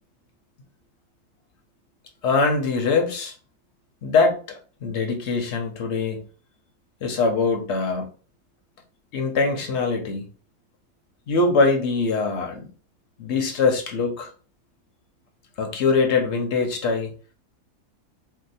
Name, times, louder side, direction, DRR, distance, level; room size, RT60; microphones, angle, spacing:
voice 1, 2.2-3.3 4.0-6.2 7.0-8.1 9.1-10.3 11.3-12.7 13.2-14.3 15.6-17.1, left 4 dB, 55° left, 4 dB, 0.9 m, -22 dB
2.8 x 2.2 x 4.0 m, 0.38 s
omnidirectional pair, 1.7 m